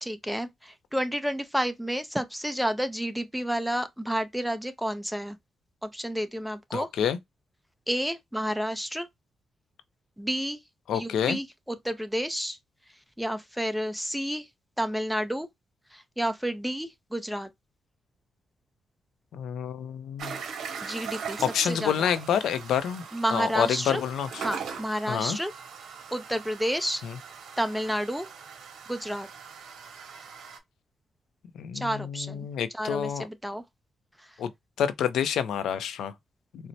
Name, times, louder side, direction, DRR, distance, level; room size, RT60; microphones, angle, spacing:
voice 1, 0.0-5.4 5.8-6.9 7.9-9.1 10.2-10.6 10.9-12.6 13.2-14.5 14.8-15.5 15.9-17.5 20.8-22.1 23.1-24.0 24.4-25.5 26.1-27.0 27.6-28.3 28.9-29.3 31.7-32.5 32.7-33.6, equal, ahead, 0.5 m, -30 dB
voice 2, 6.7-7.2 10.9-11.4 19.3-20.4 21.5-23.0 23.3-24.4 25.1-25.4 27.0-27.1 31.6-33.3 34.4-34.5 34.8-36.1, left 8 dB, 85° left, 0.5 m, -28 dB
sound 1, 20.2-30.6, right 6 dB, 75° right, 0.8 m, -41 dB
4.3 x 2.1 x 2.6 m
cardioid pair, 110°, 0 cm